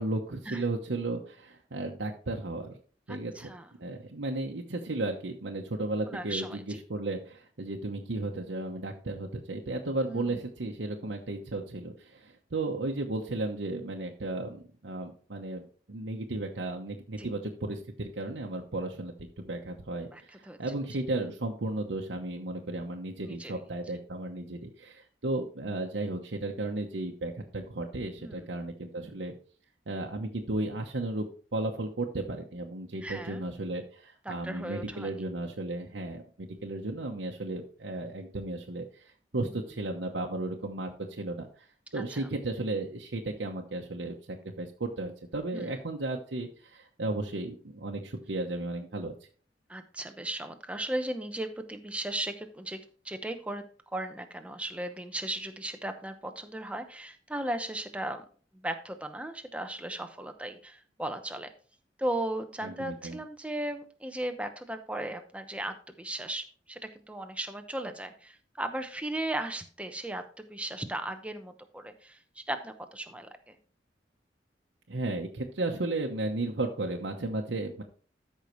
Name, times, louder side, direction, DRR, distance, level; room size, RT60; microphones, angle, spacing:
voice 1, 0.0-2.8 3.1-3.5 3.8-29.3 29.9-31.3 31.5-41.7 41.9-49.1 62.6-63.2 74.9-77.8, right 2 dB, 85° right, 1 dB, 0.9 m, -34 dB
voice 2, 3.1-3.7 6.1-6.8 10.1-10.3 17.2-17.3 20.1-20.2 20.5-20.6 23.2-23.5 28.2-28.5 33.0-33.4 34.3-35.1 41.9-42.2 45.5-45.7 49.7-58.2 58.5-61.5 62.0-73.3, right 1 dB, 5° right, 7 dB, 0.8 m, -36 dB
13.5 x 5.6 x 3.1 m, 0.43 s
head